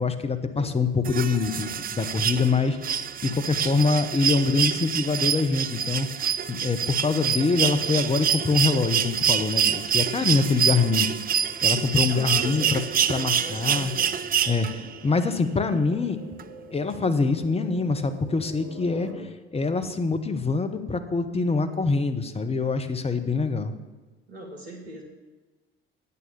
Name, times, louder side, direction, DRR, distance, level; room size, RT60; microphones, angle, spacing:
voice 1, 0.0-6.1 6.5-11.1 11.6-12.8 13.1-13.9 14.5-16.2 16.7-23.7, left 4 dB, 20° left, 9 dB, 1.1 m, -25 dB
sound 1, 1.0-15.0 16.4-16.5, right 8 dB, 30° right, 0.5 m, -26 dB
sound 2, 8.6-19.2, right 1 dB, 60° right, 2.7 m, -48 dB
voice 2, 12.1-14.1 14.6-14.7 24.3-25.0, right 1 dB, 85° right, 1 dB, 1.8 m, -39 dB
8.9 x 6.9 x 6.9 m, 1.3 s
figure-of-eight pair, 55°, 30 cm